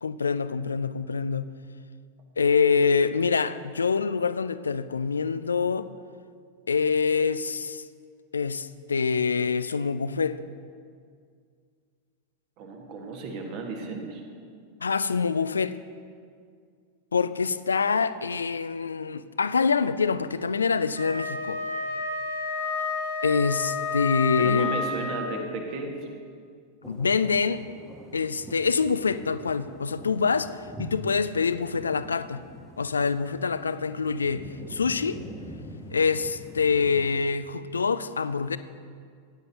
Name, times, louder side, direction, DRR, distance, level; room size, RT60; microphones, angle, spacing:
voice 1, 0.0-1.5 2.4-5.9 6.7-7.8 8.3-10.4 14.8-15.7 17.1-21.6 23.2-24.7 26.8-27.6 28.1-30.5 30.8-32.4 32.8-35.2 35.9-38.6, left 5 dB, 75° left, 0.3 m, -25 dB
voice 2, 12.6-14.2 24.4-25.9, right 3 dB, 45° right, 1.7 m, -34 dB
Wind instrument woodwind instrument, 20.9-25.5, left 4 dB, 90° right, 1.7 m, -30 dB
sound 1, 26.8-37.1, right 1 dB, 5° right, 1.1 m, -44 dB
15.5 x 9.7 x 2.9 m
figure-of-eight pair, 90°, 0 cm